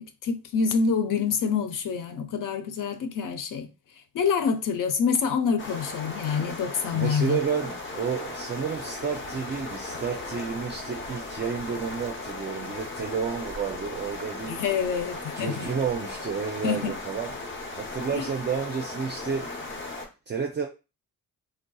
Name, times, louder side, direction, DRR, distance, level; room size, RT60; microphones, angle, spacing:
voice 1, 0.0-3.7 4.1-7.4 14.5-15.7 16.6-16.9 18.1-18.3, left 6 dB, 70° left, 0.5 m, -26 dB
sound 1, 5.6-20.1, left 2 dB, 35° left, 0.8 m, -37 dB
voice 2, 6.9-14.6 15.4-17.3 17.8-19.5 20.3-20.7, right 6 dB, 30° right, 0.5 m, -31 dB
3.4 x 2.6 x 2.2 m
cardioid pair, 100°, 34 cm